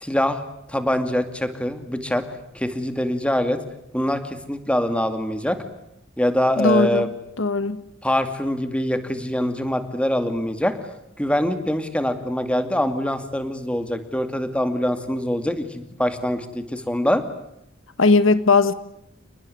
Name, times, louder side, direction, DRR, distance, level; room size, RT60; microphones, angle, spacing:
voice 1, 0.0-0.4 0.7-2.2 2.5-3.6 3.9-5.6 6.2-7.1 8.0-10.8 11.2-17.2, left 1 dB, 5° left, 9 dB, 2.4 m, -24 dB
voice 2, 6.6-7.1 7.4-7.8 18.0-18.7, left 3 dB, 80° left, 14 dB, 1.5 m, -18 dB
30.0 x 20.0 x 9.5 m, 0.82 s
head